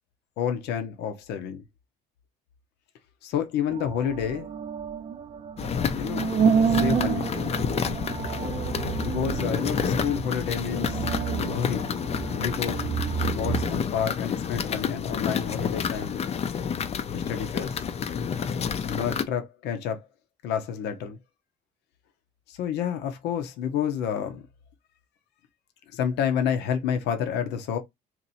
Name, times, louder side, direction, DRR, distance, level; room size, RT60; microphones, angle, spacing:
voice 1, 0.4-1.6 3.2-4.5 6.0-6.3 6.7-7.3 9.0-11.0 11.4-11.9 12.3-12.8 13.3-16.2 17.1-17.9 18.9-20.1 20.4-21.2 22.5-24.4 25.9-27.8, left 8 dB, 80° left, 0.8 m, -29 dB
sound 1, 3.7-13.8, right 7 dB, 35° right, 0.3 m, -29 dB
sound 2, 5.6-19.2, left 7 dB, 40° left, 0.5 m, -29 dB
2.9 x 2.6 x 4.0 m
cardioid pair, 110°, 17 cm